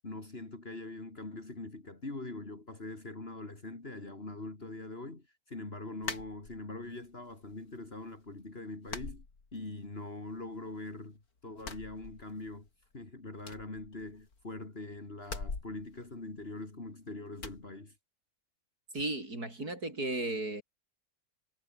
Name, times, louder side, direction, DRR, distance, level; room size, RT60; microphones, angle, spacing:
voice 1, 0.0-9.2 9.5-12.7 12.9-17.9, left 2 dB, 40° left, 3.5 m, -43 dB
sound 1, 6.0-6.9 7.3-8.0 8.3-8.4 8.9-10.0 10.3-11.1 11.5-12.7 12.9-13.0 13.4-14.5 15.2-16.9 17.4-17.7, left 4 dB, 75° left, 3.5 m, -44 dB
voice 2, 18.9-20.6, right 2 dB, 80° right, 7.9 m, -35 dB
omnidirectional pair, 1.6 m